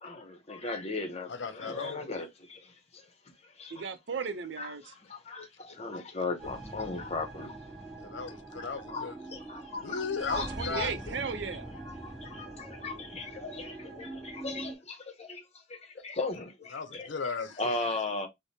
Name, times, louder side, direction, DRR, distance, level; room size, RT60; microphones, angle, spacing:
voice 1, 0.0-3.0 3.6-3.9 4.6-7.5 8.6-10.0 10.3-10.9 12.0-15.4 15.7-17.1 17.6-18.3, left 3 dB, 35° left, 0.8 m, -37 dB
voice 2, 1.3-2.2 8.0-9.2 9.8-11.1 16.7-17.7, left 5 dB, 80° left, 0.6 m, -37 dB
voice 3, 3.7-4.9 10.3-11.7, right 6 dB, 75° right, 0.6 m, -36 dB
sound 1, 6.4-14.8, right 2 dB, ahead, 1.2 m, -43 dB
4.8 x 2.1 x 2.7 m
head